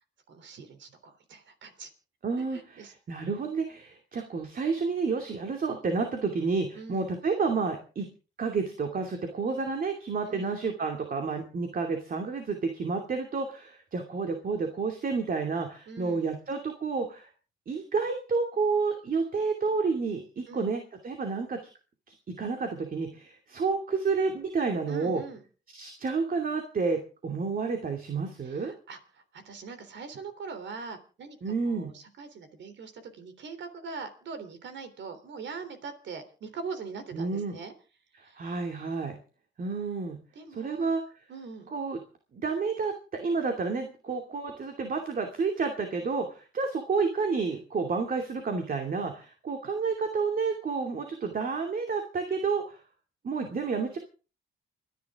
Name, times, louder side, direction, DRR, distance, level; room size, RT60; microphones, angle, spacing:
voice 1, 0.3-1.9 2.5-2.9 6.7-7.1 10.3-10.6 15.9-16.3 20.5-20.7 24.9-25.4 28.4-37.7 38.2-38.4 40.4-41.0 41.3-41.7, right 5 dB, 65° right, 10 dB, 3.4 m, -42 dB
voice 2, 2.2-8.1 8.4-17.3 17.7-21.6 22.1-25.2 25.7-28.7 31.4-31.9 37.1-37.6 38.2-39.2 39.6-40.2 40.5-41.0 41.7-42.0 42.3-52.8 53.2-54.0, right 4 dB, 45° right, 4 dB, 2.6 m, -30 dB
29.0 x 10.5 x 3.7 m, 0.36 s
cardioid pair, 90°, 20 cm